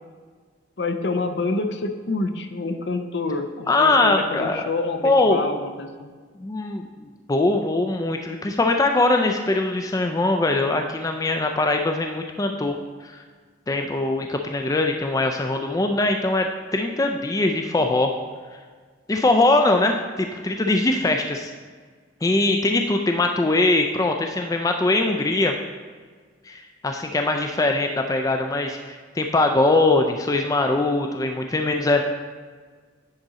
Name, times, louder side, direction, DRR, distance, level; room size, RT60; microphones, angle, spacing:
voice 1, 0.8-6.1, left 3 dB, 65° left, 7 dB, 0.6 m, -27 dB
voice 2, 3.7-4.6 5.0-5.4 6.4-13.2 13.7-18.1 19.1-21.5 22.2-25.5 26.5-32.0, left 2 dB, 20° left, 4 dB, 0.3 m, -22 dB
9.7 x 3.9 x 4.1 m, 1.5 s
head